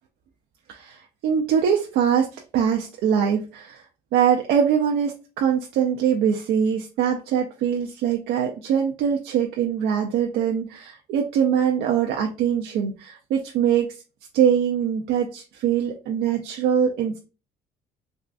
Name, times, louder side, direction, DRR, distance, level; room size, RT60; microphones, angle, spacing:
voice 1, 0.7-3.8 4.1-14.0 14.3-17.2, right 8 dB, 75° right, 2 dB, 0.5 m, -23 dB
3.6 x 2.4 x 2.3 m, 0.32 s
cardioid pair, 110°, 17 cm